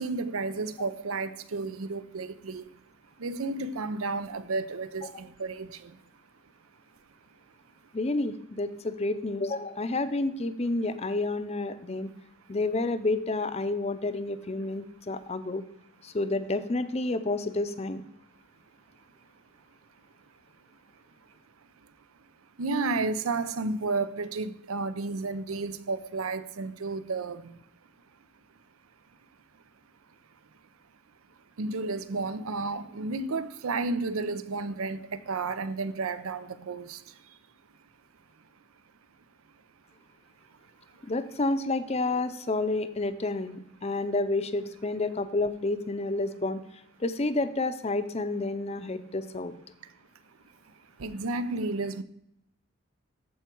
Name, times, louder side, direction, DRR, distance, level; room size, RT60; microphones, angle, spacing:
voice 1, 0.0-2.7 3.2-6.0 22.6-27.6 31.6-37.4 40.9-41.0 50.7-52.0, right 3 dB, 90° right, 0.6 m, -32 dB
voice 2, 7.9-12.1 12.5-15.7 16.0-18.0 41.0-46.6 47.0-49.6, left 2 dB, 30° left, 0.5 m, -30 dB
13.5 x 4.7 x 4.5 m
head